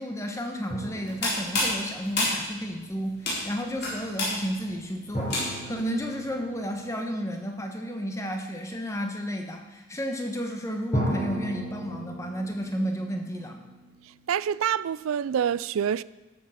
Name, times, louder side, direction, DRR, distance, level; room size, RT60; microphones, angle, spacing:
voice 1, 0.0-13.6, equal, 15° left, 1.2 m, -32 dB
sound 1, 0.7-2.5 5.1-8.0 10.9-14.7, equal, 30° left, 3.6 m, -36 dB
sound 2, 0.9-5.8, left 1 dB, 50° left, 4.1 m, -30 dB
voice 2, 14.3-16.0, right 8 dB, 80° right, 0.3 m, -26 dB
13.0 x 7.4 x 5.8 m
head